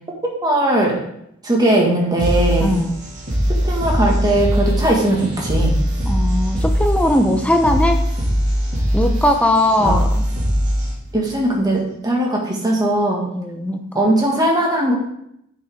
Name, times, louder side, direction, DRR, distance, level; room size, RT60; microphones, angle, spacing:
voice 1, 0.4-1.0 1.4-2.7 3.6-5.7 9.8-9.9 11.1-13.2 13.9-15.0, right 1 dB, 20° right, -2 dB, 1.8 m, -18 dB
sound 1, 2.2-11.2, equal, 40° right, 2.4 m, -21 dB
voice 2, 2.6-3.0 6.1-8.0 8.9-10.2 13.3-13.8, left 1 dB, 5° left, 5 dB, 0.7 m, -19 dB
10.5 x 5.4 x 3.6 m, 0.75 s
head